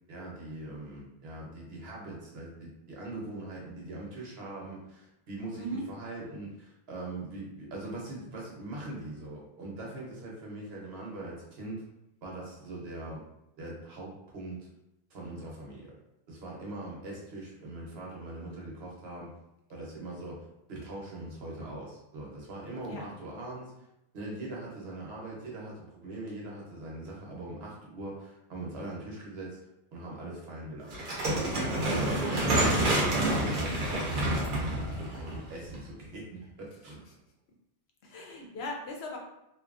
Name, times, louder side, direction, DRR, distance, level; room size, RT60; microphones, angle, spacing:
voice 1, 0.1-11.9 12.2-13.2 13.6-14.7 15.1-15.9 16.3-19.3 19.7-23.8 24.1-29.6 29.9-31.0 31.5-32.8 33.2-37.1, right 2 dB, 75° right, -3 dB, 1.0 m, -41 dB
voice 2, 5.5-5.8 22.9-23.0 38.0-39.2, equal, 85° left, 1 dB, 0.8 m, -38 dB
sound 1, 30.9-36.0, right 1 dB, 60° right, 0.8 m, -28 dB
2.6 x 2.3 x 2.4 m, 0.86 s
omnidirectional pair, 1.1 m